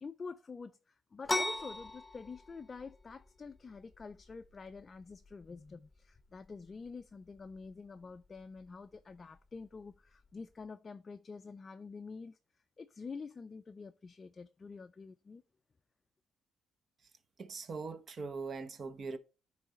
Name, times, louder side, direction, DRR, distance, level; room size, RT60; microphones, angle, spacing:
voice 1, 0.0-12.4 12.8-15.4, left 4 dB, 35° left, 0.3 m, -47 dB
sound 1, 1.2-10.6, left 2 dB, 10° left, 0.9 m, -43 dB
voice 2, 17.4-19.2, right 4 dB, 50° right, 0.8 m, -41 dB
8.7 x 3.2 x 4.2 m
cardioid pair, 90°, 0 cm